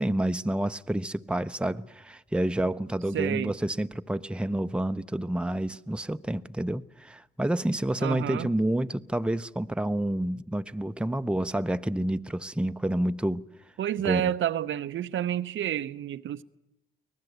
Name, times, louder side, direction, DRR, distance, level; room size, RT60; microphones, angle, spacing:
voice 1, 0.0-13.4 14.0-14.3, right 1 dB, 5° right, 0.7 m, -29 dB
voice 2, 3.1-3.5 8.0-8.5 13.8-16.4, right 11 dB, 65° right, 0.8 m, -29 dB
24.0 x 18.5 x 8.1 m
supercardioid pair, 55°, 21 cm